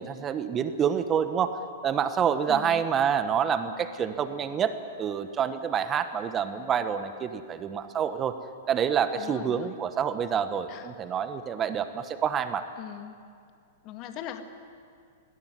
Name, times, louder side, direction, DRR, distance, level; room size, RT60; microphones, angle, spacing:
voice 1, 0.0-1.5 1.8-4.7 5.0-8.4 8.7-12.6, right 8 dB, 25° right, 10 dB, 1.2 m, -27 dB
voice 2, 2.5-2.8 9.1-9.7 10.7-10.9 12.8-13.2 13.8-14.4, left 11 dB, 40° left, 7 dB, 1.9 m, -40 dB
20.5 x 18.0 x 9.6 m, 2.3 s
hypercardioid pair, 110°, 0 cm